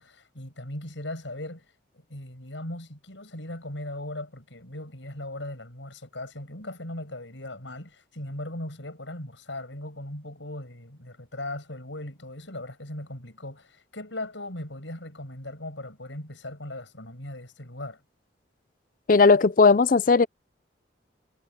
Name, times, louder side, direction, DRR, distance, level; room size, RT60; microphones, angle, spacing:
voice 1, 0.0-1.7 2.1-18.0, left 1 dB, 85° left, 7.4 m, -38 dB
voice 2, 19.1-20.3, left 4 dB, 45° left, 0.5 m, -17 dB
head